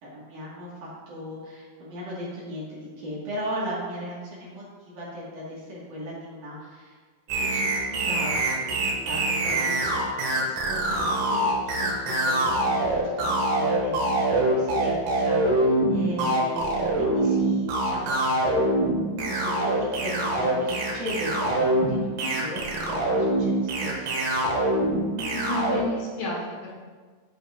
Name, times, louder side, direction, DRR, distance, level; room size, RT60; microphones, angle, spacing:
voice 1, 0.0-7.0 7.3-18.2 19.3-24.2, equal, 60° right, -6 dB, 2.9 m, -37 dB
sound 1, 7.3-25.8, right 1 dB, 85° right, 3.3 m, -24 dB
voice 2, 25.2-26.8, left 1 dB, 85° left, -4 dB, 3.7 m, -31 dB
13.5 x 5.2 x 2.5 m, 1.5 s
omnidirectional pair, 4.5 m